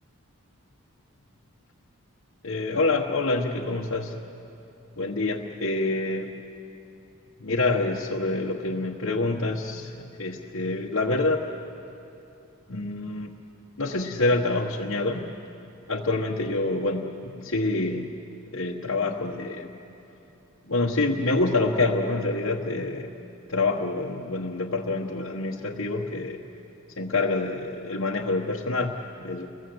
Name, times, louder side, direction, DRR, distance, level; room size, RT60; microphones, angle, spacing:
voice 1, 2.4-4.1 5.0-6.3 7.4-11.4 12.7-13.3 13.8-15.3 15.9-18.1 18.5-19.7 20.7-23.1 23.5-26.4 27.0-29.5, left 2 dB, 65° left, -3 dB, 1.3 m, -27 dB
30.0 x 21.5 x 8.0 m, 2.8 s
head